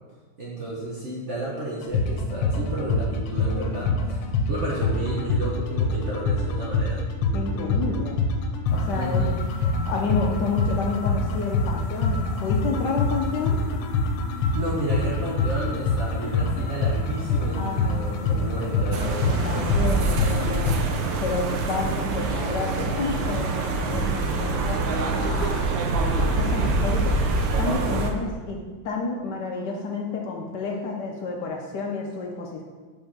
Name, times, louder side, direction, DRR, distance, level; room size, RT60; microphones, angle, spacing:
voice 1, 0.4-7.0 8.9-9.4 14.5-19.4 25.7-26.0, right 2 dB, 50° right, -5 dB, 0.9 m, -32 dB
sound 1, 1.8-20.7, left 3 dB, 85° left, 1.6 m, -25 dB
voice 2, 7.3-8.2 8.7-9.3 9.9-13.6 17.6-18.5 19.3-20.8 21.2-25.7 26.2-27.2 27.6-32.6, left 4 dB, 65° left, 0 dB, 1.1 m, -30 dB
sound 2, 18.9-28.1, right 2 dB, 70° right, 1.4 m, -25 dB
5.3 x 4.4 x 5.6 m, 1.4 s
omnidirectional pair, 2.3 m